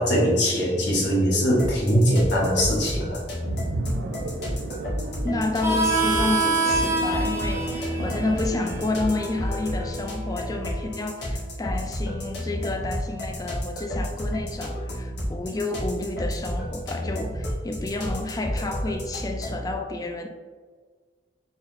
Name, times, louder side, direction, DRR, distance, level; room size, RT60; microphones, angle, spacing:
voice 1, 0.0-3.2, equal, 90° left, -4 dB, 1.1 m, -21 dB
sound 1, 1.6-19.7, equal, 70° left, 0.9 m, -31 dB
sound 2, 3.4-9.4, right 2 dB, 85° right, 0.4 m, -35 dB
voice 2, 5.2-20.3, left 2 dB, 20° left, 5 dB, 0.3 m, -30 dB
Harmonica, 5.6-10.9, right 2 dB, 15° right, 0.7 m, -27 dB
4.1 x 2.0 x 3.9 m, 1.5 s
head